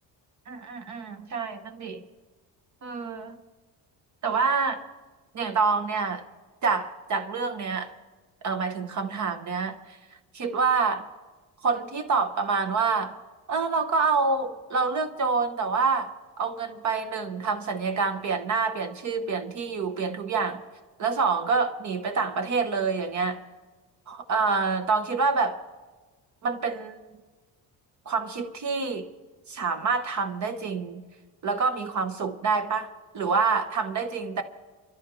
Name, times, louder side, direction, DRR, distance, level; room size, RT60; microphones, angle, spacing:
voice 1, 0.5-2.0 2.8-3.4 4.2-4.8 5.3-6.2 6.6-7.9 8.4-10.0 10.3-11.1 11.6-13.2 13.5-20.6 21.0-23.4 24.1-25.6 26.4-27.0 28.1-29.1 29.5-31.1 31.4-32.9 33.1-34.4, right 4 dB, 45° right, 7 dB, 0.9 m, -27 dB
26.5 x 13.5 x 3.1 m, 1.3 s
cardioid pair, 155°, 40 cm